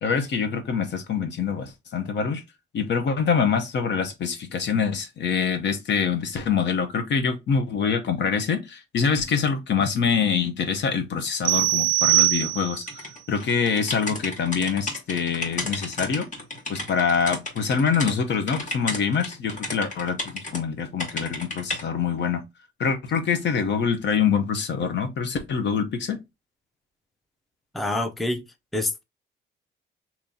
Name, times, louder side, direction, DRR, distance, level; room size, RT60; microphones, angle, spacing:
voice 1, 0.0-2.4 2.7-12.8 13.3-16.3 16.7-22.4 22.8-26.2, left 6 dB, 65° left, 1.0 m, -25 dB
sound 1, 11.4-13.0, right 18 dB, 80° right, 0.4 m, -21 dB
sound 2, 12.9-18.1 18.5-20.6 21.0-21.8, left 2 dB, 40° left, 1.6 m, -33 dB
voice 2, 27.7-28.4 28.7-29.0, left 2 dB, ahead, 0.5 m, -26 dB
3.0 x 2.8 x 3.8 m
cardioid pair, 90°, 20 cm